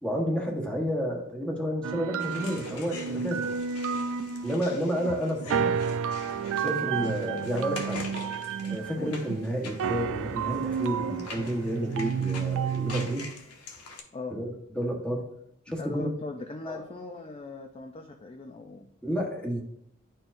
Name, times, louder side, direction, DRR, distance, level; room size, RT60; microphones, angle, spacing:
voice 1, 0.0-3.4 4.4-5.7 6.4-8.0 8.6-13.2 14.3-15.3 15.7-16.1 16.6-16.8 19.0-19.6, equal, 5° left, 0 dB, 1.2 m, -30 dB
sound 1, 1.8-13.3, right 6 dB, 60° right, 0.3 m, -31 dB
sound 2, 2.2-14.0, left 3 dB, 85° left, 1.0 m, -44 dB
voice 2, 15.8-18.9, left 2 dB, 25° left, 4 dB, 0.4 m, -39 dB
10.5 x 4.4 x 2.6 m, 0.71 s
head